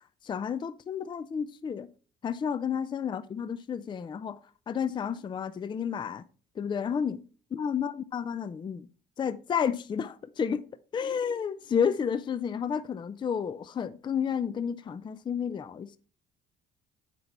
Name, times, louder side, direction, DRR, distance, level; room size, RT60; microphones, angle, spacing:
voice 1, 0.2-1.9 2.2-4.4 4.7-6.2 6.6-7.2 7.5-8.9 9.2-10.6 10.9-16.0, left 7 dB, 30° left, 0.4 m, -31 dB
8.0 x 5.3 x 4.2 m
cardioid pair, 110°, 17 cm